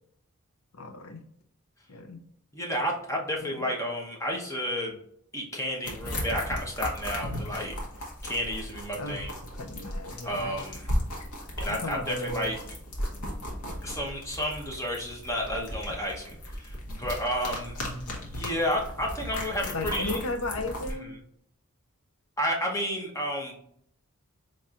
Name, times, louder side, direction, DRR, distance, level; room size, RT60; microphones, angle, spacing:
voice 1, 0.7-1.2 1.9-2.2 8.9-9.2 9.6-10.6 11.7-12.6 17.8-18.4 19.7-21.1, left 2 dB, 65° left, 7 dB, 0.6 m, -35 dB
voice 2, 2.5-5.0 5.3-7.8 8.2-9.3 10.2-10.9 11.6-12.6 13.8-17.8 18.3-20.2 22.4-23.5, equal, 15° left, -2 dB, 0.9 m, -31 dB
sound 1, 5.8-20.9, left 1 dB, 85° left, 1.1 m, -36 dB
4.2 x 3.1 x 2.4 m, 0.69 s
head